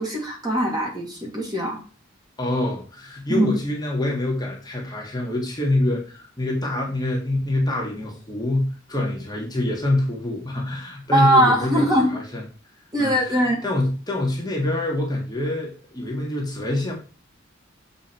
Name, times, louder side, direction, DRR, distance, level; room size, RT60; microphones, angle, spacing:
voice 1, 0.0-1.8 3.3-3.5 11.1-12.2 12.9-13.6, right 1 dB, 20° right, -1 dB, 2.1 m, -21 dB
voice 2, 2.4-12.4 13.0-16.9, left 1 dB, 20° left, -2 dB, 1.7 m, -26 dB
7.0 x 4.7 x 4.4 m, 0.36 s
head